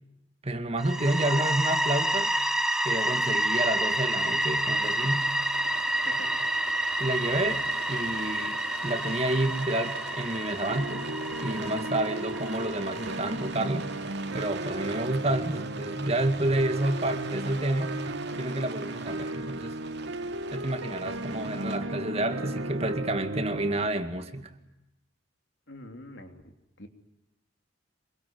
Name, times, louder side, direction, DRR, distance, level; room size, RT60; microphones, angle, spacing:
voice 1, 0.4-2.3 2.8-5.3 7.0-11.1 11.4-13.9 14.3-17.9 18.4-19.8 20.5-24.5, right 1 dB, 30° right, 7 dB, 2.2 m, -29 dB
sound 1, 0.8-13.5, right 1 dB, 5° right, 1.2 m, -29 dB
Rain, 4.2-21.8, right 4 dB, 60° right, 2.8 m, -42 dB
sound 2, 10.7-23.9, right 1 dB, 85° right, 1.5 m, -36 dB
voice 2, 25.7-26.9, left 1 dB, 65° left, 5 dB, 3.4 m, -45 dB
26.5 x 23.5 x 9.5 m, 0.87 s
head